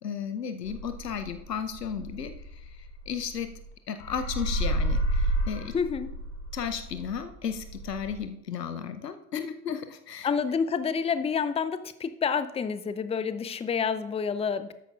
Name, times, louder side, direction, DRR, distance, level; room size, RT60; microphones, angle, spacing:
voice 1, 0.0-2.4 3.1-3.5 3.9-5.7 6.5-10.3, left 7 dB, 85° left, 10 dB, 0.8 m, -34 dB
sound 1, 0.7-3.7 4.0-8.2, equal, 60° left, 2.9 m, -31 dB
voice 2, 5.7-6.1 10.2-14.7, left 6 dB, 15° left, 13 dB, 0.6 m, -28 dB
13.0 x 10.0 x 2.4 m, 0.80 s
figure-of-eight pair, 65°, 47 cm